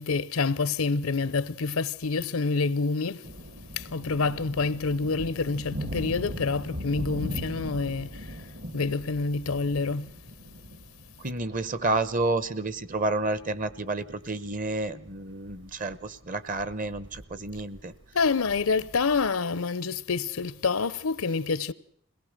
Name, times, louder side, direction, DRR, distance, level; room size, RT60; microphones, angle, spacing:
voice 1, 0.0-3.3 3.7-8.4 8.7-10.1 18.1-21.7, left 4 dB, 85° left, 0.8 m, -27 dB
sound 1, 3.2-19.3, equal, 55° right, 1.7 m, -41 dB
voice 2, 11.2-17.9, right 2 dB, 40° right, 0.9 m, -30 dB
22.5 x 17.5 x 6.6 m
head